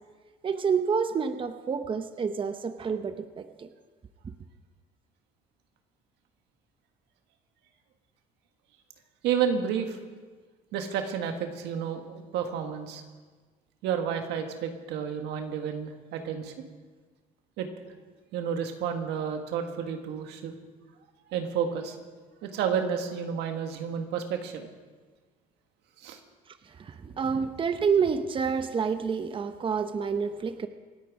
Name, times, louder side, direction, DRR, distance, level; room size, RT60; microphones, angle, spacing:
voice 1, 0.4-3.7 26.8-30.7, right 6 dB, 30° right, 9 dB, 0.8 m, -28 dB
voice 2, 9.2-10.0 10.7-13.0 13.8-16.7 17.6-17.7 18.3-20.5 21.3-22.0 22.4-24.7 26.0-26.2, right 7 dB, 85° right, 5 dB, 1.7 m, -31 dB
26.0 x 9.1 x 4.9 m, 1.4 s
cardioid pair, 110°, 17 cm